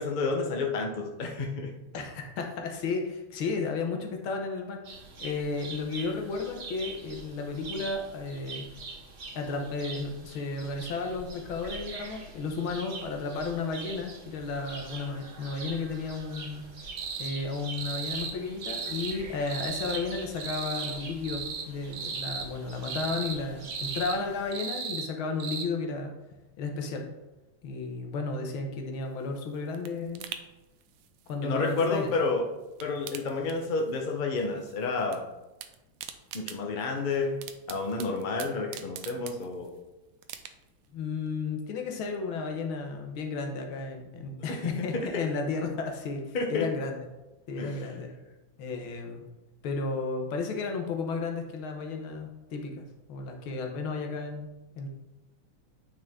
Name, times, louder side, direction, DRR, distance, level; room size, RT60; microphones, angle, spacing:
voice 1, 0.0-1.7 31.4-32.5 32.8-35.2 36.3-37.4 37.7-39.7 44.5-45.3 46.3-46.7 47.6-47.9, left 3 dB, 35° left, 1 dB, 0.8 m, -30 dB
voice 2, 1.9-4.8 5.2-8.7 9.4-16.6 17.2-26.2 26.6-27.1 27.6-30.3 31.3-32.2 40.9-47.0 47.5-48.1 48.6-49.2 49.6-54.5 54.8-54.9, left 4 dB, 85° left, 3 dB, 1.9 m, -33 dB
sound 1, 4.8-24.5, right 4 dB, 45° right, 1.4 m, -44 dB
sound 2, 17.0-17.3 17.7-18.3 18.6-19.2 19.5-20.0 20.4-21.0 21.2-21.7 21.9-22.5 22.8-23.4 23.7-24.2 24.5-25.1 25.4-25.6, right 6 dB, 65° right, 1.5 m, -35 dB
sound 3, 29.0-32.3 32.6-34.1 34.4-35.2 35.4-39.8 40.2-40.9 41.3-41.4, right 10 dB, 90° right, 1.4 m, -45 dB
9.2 x 5.0 x 3.6 m, 1.0 s
omnidirectional pair, 2.2 m